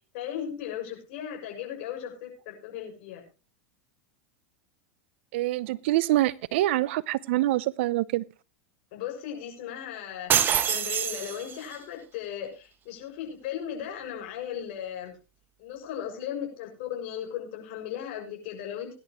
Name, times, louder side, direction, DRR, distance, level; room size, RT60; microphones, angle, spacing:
voice 1, 0.1-3.2 8.9-15.1 15.6-18.9, left 9 dB, 65° left, 6.6 m, -37 dB
voice 2, 5.3-8.2, right 16 dB, 70° right, 0.7 m, -25 dB
sound 1, 10.3-11.8, right 8 dB, 35° right, 1.8 m, -25 dB
20.5 x 11.0 x 3.1 m
hypercardioid pair, 110°, 6 cm